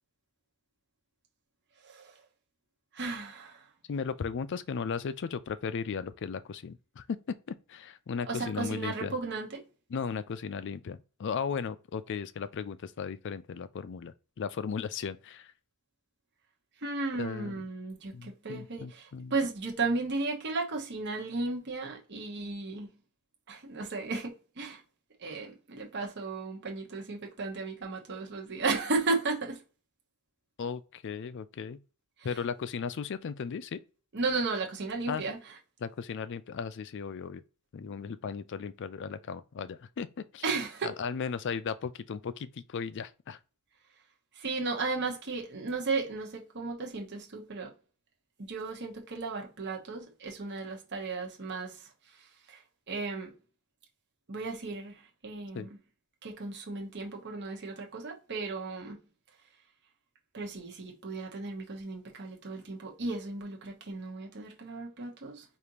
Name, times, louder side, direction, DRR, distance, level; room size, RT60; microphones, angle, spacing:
voice 1, 2.9-3.6 8.3-9.6 16.8-22.9 23.5-24.8 25.2-29.6 34.1-35.4 40.4-40.9 44.4-47.7 48.5-51.8 52.5-52.6 52.9-53.3 54.3-54.9 55.2-55.7 56.2-59.0 60.3-65.4, right 3 dB, 50° right, 1.0 m, -34 dB
voice 2, 3.9-9.1 9.9-15.5 17.1-17.6 18.1-19.3 30.6-31.8 32.2-33.8 35.1-35.2 35.8-37.4 37.7-40.5 40.8-43.4 55.5-55.7, left 6 dB, 55° left, 0.4 m, -36 dB
5.0 x 2.6 x 2.9 m
head